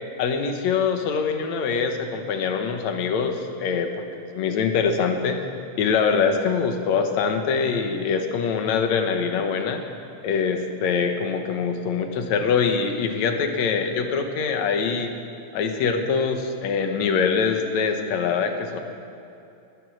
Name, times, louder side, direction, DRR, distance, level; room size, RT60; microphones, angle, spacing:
voice 1, 0.2-5.4 5.8-9.8 10.2-15.1 15.5-18.8, left 5 dB, 70° left, 5 dB, 2.4 m, -24 dB
18.5 x 10.5 x 6.3 m, 2.7 s
omnidirectional pair, 3.4 m